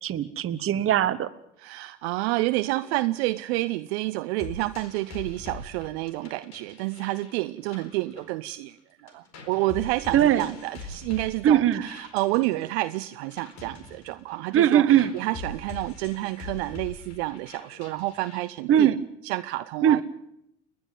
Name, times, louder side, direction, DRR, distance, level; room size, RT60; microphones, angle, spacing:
voice 1, 0.0-1.3 10.1-10.5 11.4-11.9 14.5-15.1 18.7-19.0 19.8-20.0, right 10 dB, 35° right, 14 dB, 1.2 m, -20 dB
voice 2, 1.6-8.8 9.0-19.0 19.2-20.0, right 19 dB, 60° right, 13 dB, 0.7 m, -29 dB
sound 1, 4.4-8.8 9.1-18.4, left 3 dB, 45° left, 4.4 m, -43 dB
29.5 x 10.5 x 9.2 m, 0.80 s
hypercardioid pair, 75°, 36 cm